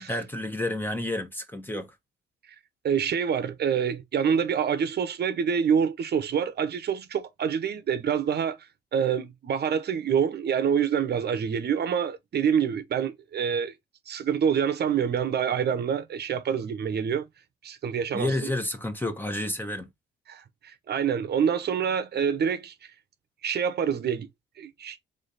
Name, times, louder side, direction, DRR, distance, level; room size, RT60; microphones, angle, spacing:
voice 1, 0.0-1.9 18.1-19.9, left 1 dB, 10° left, 1.0 m, -30 dB
voice 2, 2.8-8.6 8.9-13.7 14.1-17.3 17.6-18.3 20.3-22.7 23.4-24.3 24.6-25.0, right 7 dB, 55° right, 0.9 m, -26 dB
3.5 x 3.3 x 4.0 m
cardioid pair, 90°, 20 cm